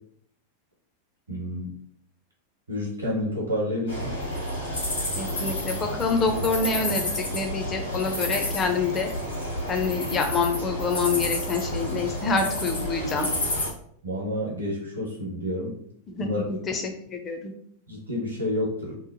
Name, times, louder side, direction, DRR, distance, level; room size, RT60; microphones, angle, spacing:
voice 1, 1.3-1.7 2.7-4.1 14.0-15.7 16.2-16.4 17.9-18.9, left 1 dB, 75° right, -3 dB, 0.9 m, -29 dB
sound 1, 3.9-13.7, left 1 dB, 70° left, 1.3 m, -30 dB
voice 2, 5.2-9.1 9.7-13.3 16.1-17.5, left 4 dB, 25° left, 3 dB, 0.4 m, -27 dB
2.9 x 2.0 x 2.6 m, 0.65 s
figure-of-eight pair, 90°, 0 cm